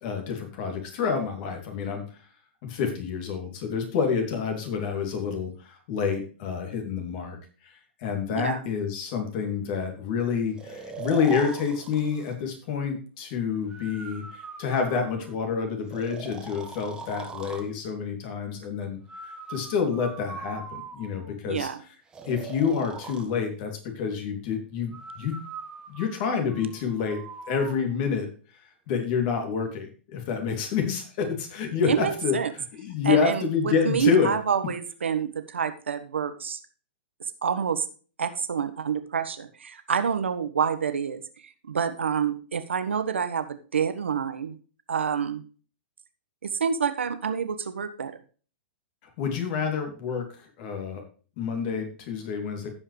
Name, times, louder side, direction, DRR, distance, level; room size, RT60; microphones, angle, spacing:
voice 1, 0.0-2.0 2.6-7.4 7.6-21.7 22.3-25.3 25.9-34.3 49.2-51.0 51.4-52.7, left 6 dB, 45° left, 4 dB, 2.9 m, -28 dB
Breathing, 10.6-12.4 13.7-15.4 15.9-17.7 19.1-21.3 22.1-23.3 24.9-27.8, right 5 dB, 10° right, 1.5 m, -41 dB
voice 2, 21.5-21.8 31.9-32.5 33.0-36.6 37.4-37.9 38.2-44.6 44.9-45.4 46.4-48.2, right 7 dB, 90° right, 10 dB, 1.4 m, -28 dB
15.5 x 5.7 x 3.3 m, 0.38 s
hypercardioid pair, 125°, 6 cm